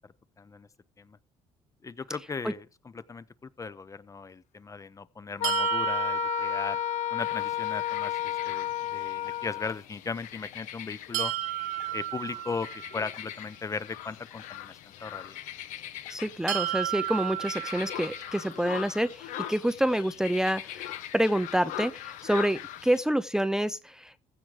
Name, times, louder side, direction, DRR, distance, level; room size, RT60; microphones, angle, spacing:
voice 1, 0.4-0.7 1.0-1.2 1.8-2.7 2.9-6.8 7.1-11.3 11.9-15.4, left 4 dB, 25° left, 0.8 m, -37 dB
Wind instrument woodwind instrument, 5.4-9.8, left 13 dB, 70° left, 1.0 m, -31 dB
sound 1, 5.4-7.4 11.1-13.2 16.5-18.5, right 16 dB, 90° right, 1.0 m, -33 dB
sound 2, 7.2-23.0, left 12 dB, 85° left, 1.3 m, -42 dB
voice 2, 16.1-24.1, right 1 dB, 5° right, 0.6 m, -28 dB
15.5 x 6.0 x 4.9 m
cardioid pair, 100°, 13 cm